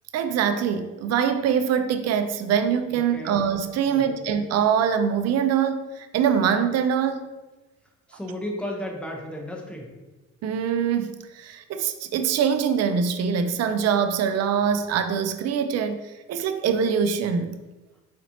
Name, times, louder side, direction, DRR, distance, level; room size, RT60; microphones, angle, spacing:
voice 1, 0.1-7.2 10.4-17.6, right 7 dB, 60° right, 8 dB, 0.4 m, -24 dB
voice 2, 2.9-3.4 3.9-4.3 8.1-9.9, left 1 dB, 5° left, -1 dB, 0.9 m, -34 dB
4.2 x 4.1 x 2.9 m, 1.1 s
cardioid pair, 90°, 30 cm